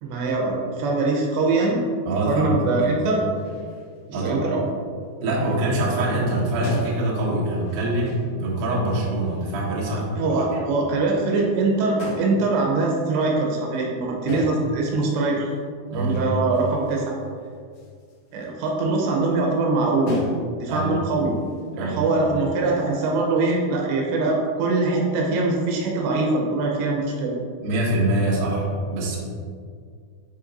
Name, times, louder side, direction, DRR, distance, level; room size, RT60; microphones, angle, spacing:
voice 1, 0.0-1.8 2.3-3.2 4.1-4.6 9.9-15.5 15.9-17.2 18.3-20.2 20.6-21.3 21.8-27.3, right 3 dB, 85° right, -1 dB, 3.1 m, -23 dB
voice 2, 2.1-2.9 4.1-4.4 5.2-10.2 10.5-10.6 15.9-16.2 20.7-20.9 21.8-22.1 27.6-29.2, right 1 dB, 70° right, -4 dB, 2.7 m, -24 dB
sound 1, 3.3-4.3 4.7-5.2 5.8-5.9 6.1-8.9 9.3-9.9 10.3-10.5 12.0-12.4 14.3-14.8 15.2-19.6 20.1-20.7 21.1-23.2, left 1 dB, 65° left, 2.1 m, -37 dB
10.5 x 4.4 x 2.6 m, 2.1 s
omnidirectional pair, 4.9 m